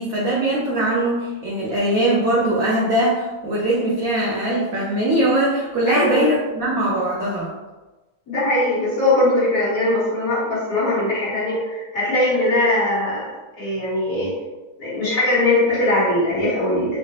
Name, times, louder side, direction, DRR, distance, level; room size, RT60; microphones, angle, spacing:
voice 1, 0.0-7.5, right 1 dB, 75° right, -5 dB, 0.8 m, -21 dB
voice 2, 5.9-6.2 8.3-13.3 13.6-14.3 14.8-17.0, left 1 dB, 45° left, -9 dB, 1.4 m, -20 dB
4.6 x 2.0 x 2.8 m, 1.2 s
omnidirectional pair, 2.2 m